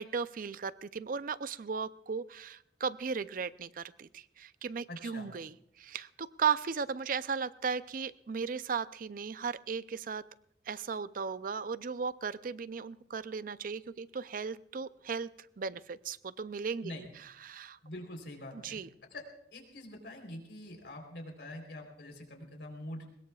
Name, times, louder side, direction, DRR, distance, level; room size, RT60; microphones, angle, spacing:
voice 1, 0.0-10.2 10.7-15.3 15.6-17.1 17.4-17.8 18.5-18.9, right 6 dB, 50° right, 15 dB, 0.5 m, -36 dB
voice 2, 4.9-5.3 16.8-17.1 17.8-18.8 19.1-19.2 19.5-23.1, left 1 dB, 70° left, 3 dB, 3.7 m, -45 dB
22.0 x 21.0 x 2.4 m, 0.71 s
head